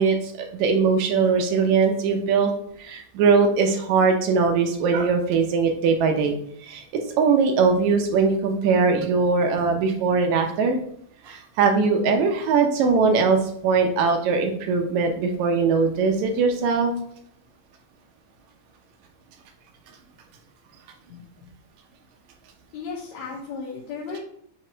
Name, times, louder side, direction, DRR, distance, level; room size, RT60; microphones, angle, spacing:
voice 1, 0.0-2.5 2.8-6.3 6.6-6.8 7.2-10.8 11.3-16.9, right 5 dB, 80° right, 4 dB, 2.1 m, -21 dB
voice 2, 22.7-24.2, left 5 dB, 75° left, -5 dB, 2.3 m, -34 dB
8.1 x 2.9 x 4.4 m, 0.66 s
omnidirectional pair, 3.3 m